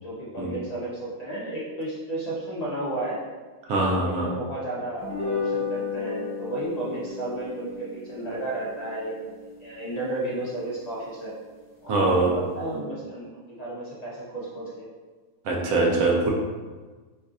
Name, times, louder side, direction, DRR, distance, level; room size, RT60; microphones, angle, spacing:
voice 1, 0.0-3.2 3.8-9.3 9.6-11.3 11.8-14.9, right 2 dB, 65° left, -6 dB, 0.4 m, -33 dB
voice 2, 3.7-4.3 11.9-12.3 15.4-16.3, right 2 dB, 80° right, -1 dB, 1.1 m, -22 dB
sound 1, 5.0-11.5, left 5 dB, 10° left, 0.9 m, -35 dB
3.1 x 2.4 x 3.8 m, 1.4 s
omnidirectional pair, 1.6 m